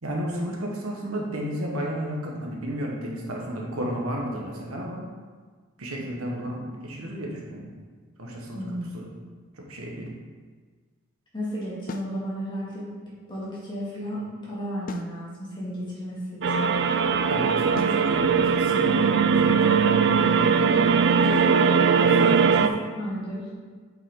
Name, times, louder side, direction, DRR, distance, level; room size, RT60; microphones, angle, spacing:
voice 1, 0.0-5.1 5.8-7.7 8.2-9.1 9.5-10.2 17.3-20.7 22.0-22.7, equal, 80° right, -1 dB, 1.4 m, -32 dB
voice 2, 8.5-9.1 11.3-12.9 13.3-16.7 21.1-21.6 22.1-22.3 22.6-23.5, equal, 20° left, -8 dB, 2.4 m, -33 dB
sound 1, 11.9-12.2 14.9-15.2 17.8-18.1, left 3 dB, 40° left, 0.4 m, -36 dB
sound 2, 16.4-22.7, right 6 dB, 55° right, 0.4 m, -20 dB
7.6 x 5.8 x 3.8 m, 1.5 s
head